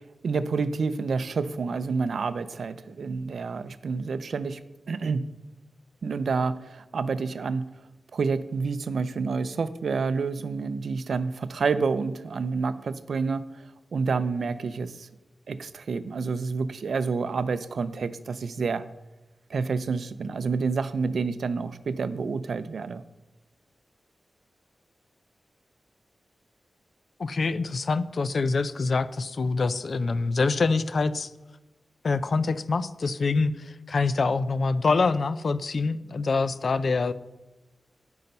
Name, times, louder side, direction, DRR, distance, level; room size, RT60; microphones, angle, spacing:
voice 1, 0.0-4.6 4.9-5.3 6.0-7.7 8.1-13.5 13.9-15.1 15.5-18.8 19.5-23.0, right 4 dB, 75° right, 13 dB, 0.5 m, -28 dB
voice 2, 27.2-31.3 32.0-37.1, left 4 dB, 65° left, 14 dB, 0.5 m, -25 dB
12.0 x 5.6 x 5.4 m, 1.0 s
cardioid pair, 70°, 0 cm